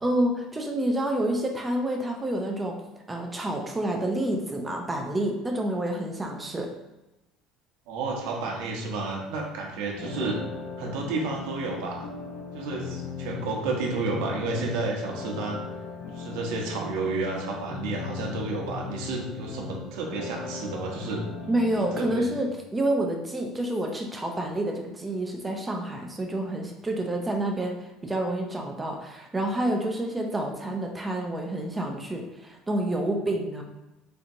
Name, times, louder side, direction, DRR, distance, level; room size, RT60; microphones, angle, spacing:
voice 1, 0.0-2.8 3.1-6.7 21.5-33.6, right 1 dB, 10° right, 2 dB, 0.3 m, -28 dB
voice 2, 7.9-10.4 10.8-12.1 12.5-15.6 16.1-21.2 22.0-22.4, right 3 dB, 85° right, -1 dB, 0.8 m, -31 dB
sound 1, 10.0-22.0, left 5 dB, 55° left, 0.6 m, -38 dB
4.3 x 2.7 x 2.5 m, 1.0 s
cardioid pair, 170°, 0 cm